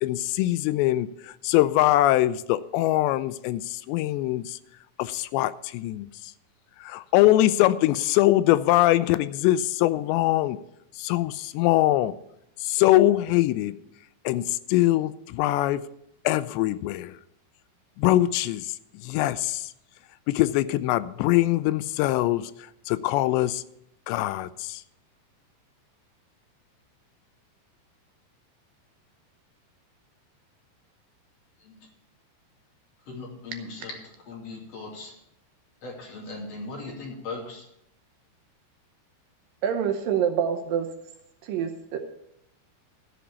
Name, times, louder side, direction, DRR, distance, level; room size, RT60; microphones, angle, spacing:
voice 1, 0.0-4.6 5.0-6.1 6.8-10.6 11.0-12.1 12.6-13.7 14.3-15.8 16.3-17.1 18.0-18.7 19.0-19.7 20.3-22.5 22.9-23.6 24.1-24.8, left 15 dB, 90° left, 15 dB, 2.8 m, -23 dB
voice 2, 33.1-35.1 35.8-37.7, left 3 dB, 40° left, -1 dB, 3.4 m, -38 dB
voice 3, 39.6-40.9 41.4-42.0, right 8 dB, 75° right, 5 dB, 2.1 m, -26 dB
14.0 x 5.0 x 8.2 m, 0.77 s
omnidirectional pair, 4.9 m